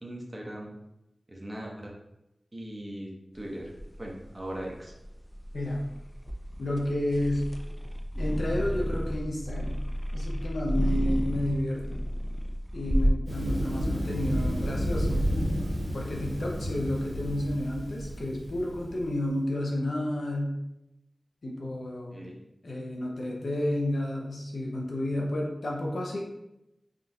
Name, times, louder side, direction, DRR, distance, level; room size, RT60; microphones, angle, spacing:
voice 1, 0.0-0.7 1.3-1.9 2.5-3.7 4.0-4.9 22.1-22.4, right 1 dB, 35° right, -2 dB, 0.7 m, -39 dB
sound 1, 3.3-13.1, equal, 15° left, 0.3 m, -31 dB
voice 2, 6.6-7.4 8.1-9.8 10.1-12.0 12.7-15.3 15.9-20.6 21.4-22.3 22.6-26.2, left 1 dB, 80° left, -1 dB, 0.6 m, -31 dB
Thunder, 13.3-19.1, equal, 75° right, 1.1 m, -31 dB
3.6 x 2.4 x 2.7 m, 0.89 s
wide cardioid pair, 65°, 0 cm